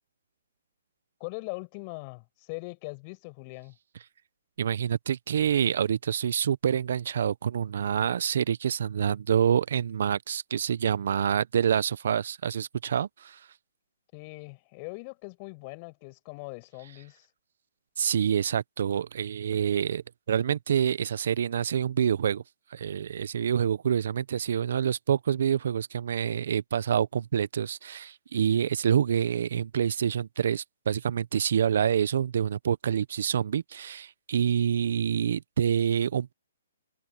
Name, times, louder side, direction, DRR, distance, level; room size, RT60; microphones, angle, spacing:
voice 1, 1.2-3.8 14.1-17.3, left 31 dB, 35° left, 7.0 m, -41 dB
voice 2, 4.6-13.4 18.0-22.4 22.7-36.3, right 8 dB, 65° right, 0.9 m, -27 dB
hypercardioid pair, 135°, 0 cm